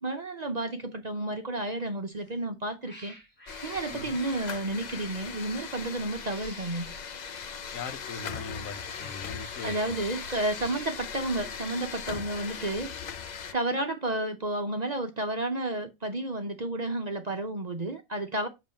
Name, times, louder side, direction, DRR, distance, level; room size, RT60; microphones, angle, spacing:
voice 1, 0.0-3.2 3.6-6.9 9.6-12.9 13.5-18.5, right 2 dB, 40° right, 0.7 m, -31 dB
Cat, 2.1-2.4 2.8-4.9 6.0-7.1 8.4-11.0, equal, 5° left, 2.6 m, -51 dB
sound 1, 3.5-13.5, left 6 dB, 50° left, 0.5 m, -39 dB
voice 2, 7.7-9.9, left 4 dB, 80° left, 1.3 m, -40 dB
7.3 x 3.1 x 5.2 m
omnidirectional pair, 1.4 m